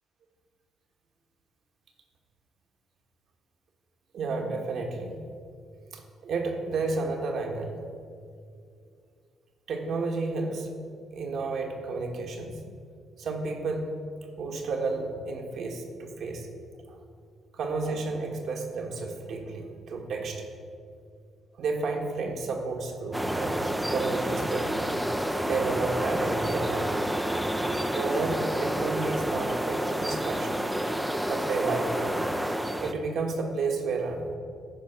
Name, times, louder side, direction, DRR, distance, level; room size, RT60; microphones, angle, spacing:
voice 1, 4.1-5.1 5.9-7.8 9.7-10.7 11.1-12.6 13.2-13.9 14.4-16.5 16.9-17.0 17.5-20.4 21.6-24.7 25.4-26.9 27.9-30.6 31.3-32.3 32.8-34.3, right 3 dB, 65° right, 2 dB, 1.6 m, -31 dB
sound 1, 23.1-32.9, right 1 dB, 5° right, 0.6 m, -29 dB
13.5 x 5.2 x 5.9 m, 2.3 s
cardioid pair, 90°, 0 cm